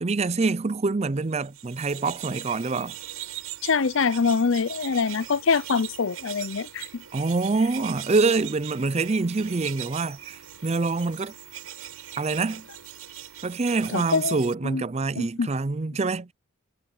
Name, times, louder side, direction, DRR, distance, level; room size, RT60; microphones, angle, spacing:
voice 1, 0.0-2.9 7.1-11.3 12.2-12.7 13.4-16.3, right 3 dB, 30° right, 0.4 m, -25 dB
sound 1, 1.3-14.5, right 11 dB, 85° right, 6.9 m, -40 dB
voice 2, 3.6-6.9 13.9-14.4 14.6-14.8 15.2-15.5, left 5 dB, 60° left, 0.5 m, -24 dB
head